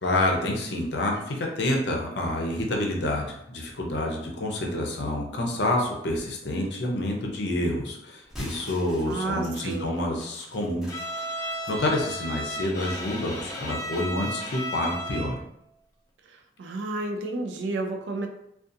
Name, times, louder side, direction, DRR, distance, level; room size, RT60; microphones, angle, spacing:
voice 1, 0.0-15.4, left 1 dB, 65° left, 1 dB, 0.6 m, -28 dB
sound 1, 8.2-12.2 12.7-14.0, equal, ahead, 0.8 m, -45 dB
voice 2, 9.1-9.9 16.6-18.3, right 2 dB, 80° right, 5 dB, 0.4 m, -31 dB
Bowed string instrument, 10.9-15.4, equal, 20° left, 0.4 m, -34 dB
2.5 x 2.3 x 2.6 m, 0.78 s
head